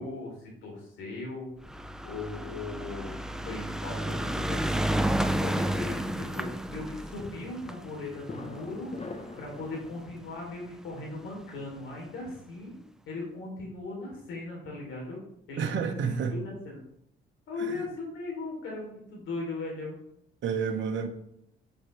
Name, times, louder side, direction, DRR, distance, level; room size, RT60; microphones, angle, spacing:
voice 1, 0.0-1.5 2.0-3.2 3.4-4.8 5.3-8.9 9.4-12.7 13.1-15.2 15.5-16.8 17.5-20.0, left 3 dB, 85° left, -1 dB, 3.5 m, -38 dB
sound 1, 1.6-10.1 10.9-11.0 11.2-11.3 11.6-11.7, right 1 dB, 5° right, 0.5 m, -31 dB
sound 2, 6.9-10.1, left 3 dB, 35° left, 1.2 m, -45 dB
voice 2, 15.6-16.5 17.5-17.9 20.4-21.1, right 6 dB, 70° right, 4 dB, 1.2 m, -30 dB
8.7 x 7.5 x 3.4 m, 0.74 s
cardioid pair, 90°, 20 cm